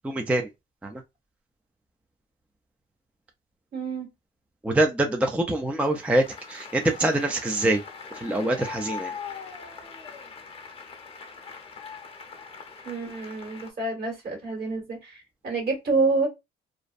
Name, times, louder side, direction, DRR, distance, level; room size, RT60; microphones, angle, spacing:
voice 1, 0.0-0.5 0.8-1.0 4.6-7.8 8.1-9.2, right 1 dB, 5° right, 0.4 m, -25 dB
voice 2, 3.7-4.1 12.8-16.3, right 3 dB, 50° right, 1.5 m, -28 dB
Applause, 5.8-13.7, left 5 dB, 30° left, 0.7 m, -41 dB
2.5 x 2.1 x 2.4 m
cardioid pair, 90°, 20 cm